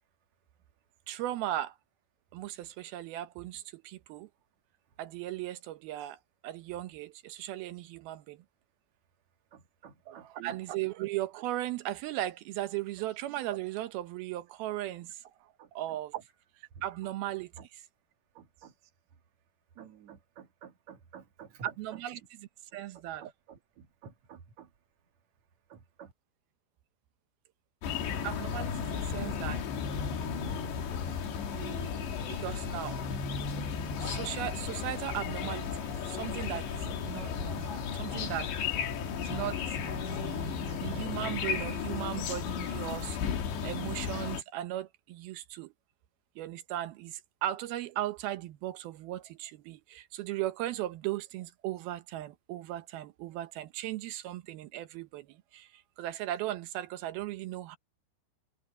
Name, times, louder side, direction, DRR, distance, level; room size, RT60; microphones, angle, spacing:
voice 1, 1.1-1.8 2.3-4.3 5.0-8.4 10.1-15.2 15.7-16.2 16.8-17.8 21.6-23.3 28.2-29.6 31.5-33.0 34.0-38.5 39.2-39.6 40.1-43.2 43.6-45.7 46.4-57.8, right 14 dB, 75° right, 2.4 m, -37 dB
voice 2, 9.5-10.5 18.4-18.7 19.8-21.5 23.2-23.3 24.0-24.7 25.7-26.1, right 9 dB, 60° right, 2.0 m, -51 dB
sound 1, 27.8-44.4, left 6 dB, 70° left, 4.6 m, -34 dB
omnidirectional pair, 5.3 m